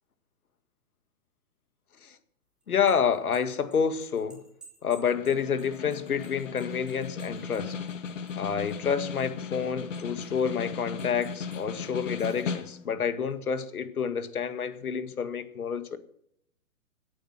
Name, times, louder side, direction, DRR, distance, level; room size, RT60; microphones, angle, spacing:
sound 1, 2.6-8.9 9.2-10.4 11.0-11.6 12.0-12.5, right 3 dB, ahead, 2.6 m, -55 dB
voice 1, 2.7-4.4 4.8-7.8 8.4-16.0, left 7 dB, 90° left, 1.9 m, -29 dB
Snare drum, 5.1-13.0, left 5 dB, 60° left, 2.1 m, -37 dB
17.5 x 9.0 x 6.0 m
hypercardioid pair, 165°, 43 cm